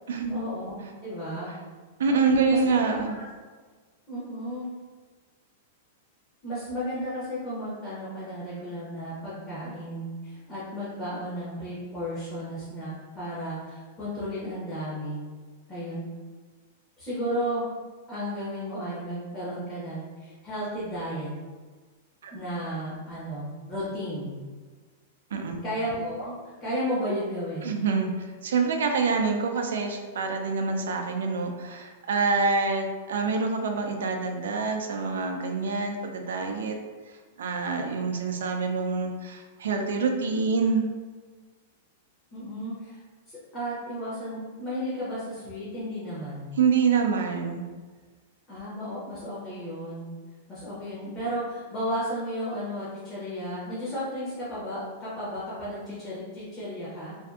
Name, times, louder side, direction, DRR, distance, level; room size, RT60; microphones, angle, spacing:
voice 1, 0.3-0.8 1.0-1.5 2.4-2.6 2.9-3.0 4.1-4.6 6.4-15.2 15.7-16.1 17.0-17.7 18.1-21.3 22.3-24.4 25.6-26.3 26.6-27.8 42.3-43.0 43.3-46.5 48.5-50.1 50.5-57.1, equal, 15° left, -11 dB, 0.7 m, -33 dB
voice 2, 2.0-3.2 22.2-22.3 25.3-25.6 27.6-36.8 37.4-40.9 46.6-47.6, right 4 dB, 90° right, 3 dB, 0.4 m, -26 dB
2.6 x 2.4 x 2.3 m, 1.4 s
supercardioid pair, 160°, 0 cm